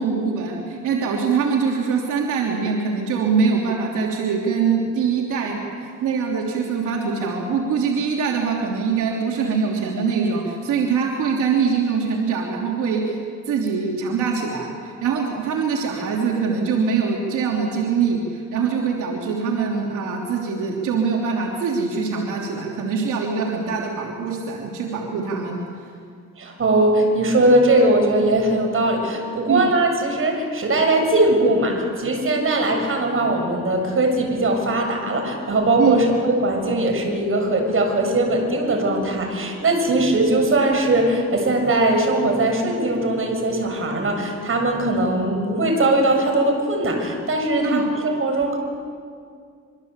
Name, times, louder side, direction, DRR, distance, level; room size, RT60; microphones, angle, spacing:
voice 1, 0.0-13.1 13.5-25.6 29.5-29.7 35.8-36.0 47.6-47.8, right 5 dB, 85° right, -1 dB, 3.3 m, -23 dB
voice 2, 26.4-48.6, right 2 dB, 45° right, 3 dB, 7.1 m, -20 dB
26.0 x 24.0 x 8.3 m, 2.2 s
cardioid pair, 90°, 30 cm